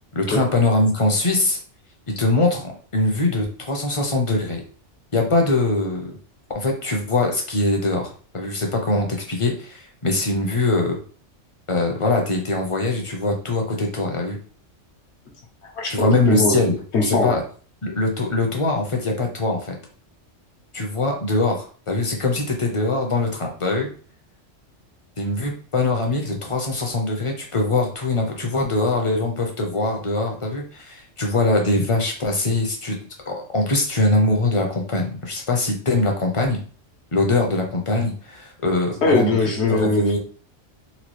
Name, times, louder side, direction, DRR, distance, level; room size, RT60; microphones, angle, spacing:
voice 1, 0.1-1.6 2.1-4.6 5.1-6.2 6.5-11.0 11.7-14.4 15.9-16.7 17.0-17.4 17.8-19.8 20.7-23.9 25.2-33.0 33.3-36.6 37.1-39.3 39.7-40.2, left 2 dB, 35° left, 1 dB, 0.6 m, -22 dB
voice 2, 15.6-16.6 16.9-17.4 39.0-40.0, left 3 dB, 65° left, 1 dB, 1.2 m, -20 dB
4.1 x 2.3 x 3.1 m, 0.41 s
omnidirectional pair, 1.2 m